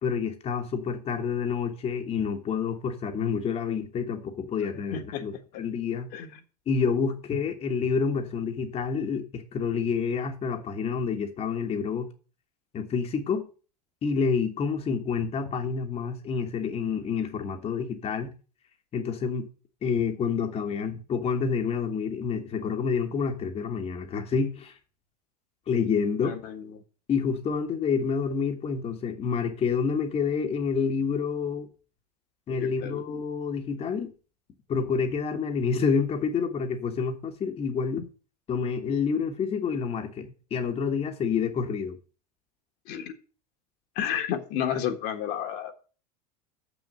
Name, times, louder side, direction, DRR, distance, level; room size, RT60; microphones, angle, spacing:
voice 1, 0.0-5.3 5.6-6.1 6.7-12.1 12.7-13.5 14.0-18.3 18.9-19.5 19.8-24.8 25.7-26.4 27.1-31.7 32.5-34.1 34.7-38.1 38.5-42.0, left 5 dB, 30° left, 1.3 m, -28 dB
voice 2, 4.9-5.3 6.1-6.4 26.2-26.8 32.5-33.0 42.8-43.1 43.9-45.7, left 9 dB, 50° left, 1.5 m, -31 dB
6.9 x 6.4 x 7.7 m
hypercardioid pair, 85°, 21 cm